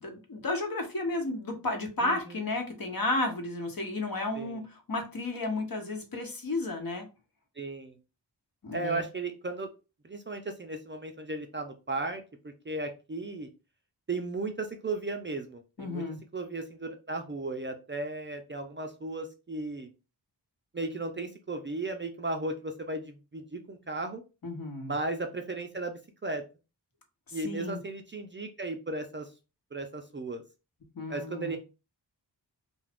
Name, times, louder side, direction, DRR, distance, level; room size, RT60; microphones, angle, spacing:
voice 1, 0.0-7.1 8.6-9.0 15.8-16.2 24.4-24.9 27.3-27.8 30.9-31.6, left 2 dB, 50° left, 3 dB, 1.0 m, -33 dB
voice 2, 2.0-2.4 4.3-4.6 7.6-8.0 8.7-9.7 10.0-13.5 14.1-16.0 16.3-19.9 20.7-24.2 24.9-26.4 27.3-29.3 29.7-30.4 31.1-31.6, right 2 dB, 25° right, 5 dB, 0.5 m, -35 dB
2.5 x 2.4 x 3.4 m, 0.31 s
cardioid pair, 45°, 44 cm